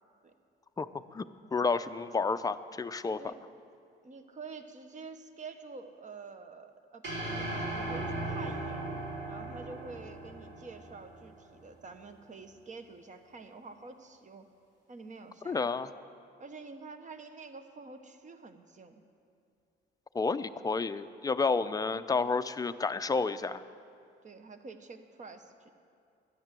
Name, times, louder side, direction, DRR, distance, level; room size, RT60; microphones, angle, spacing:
voice 1, 1.5-3.2 15.5-15.9 20.1-23.6, left 4 dB, 20° left, 11 dB, 0.5 m, -30 dB
voice 2, 4.0-8.8 9.3-14.5 14.9-15.7 16.4-19.0 24.2-25.7, right 4 dB, 40° right, 8 dB, 1.0 m, -48 dB
sound 1, 7.0-11.4, right 2 dB, 70° right, 4.3 m, -37 dB
12.0 x 10.0 x 7.6 m, 2.4 s
cardioid pair, 90°, 20 cm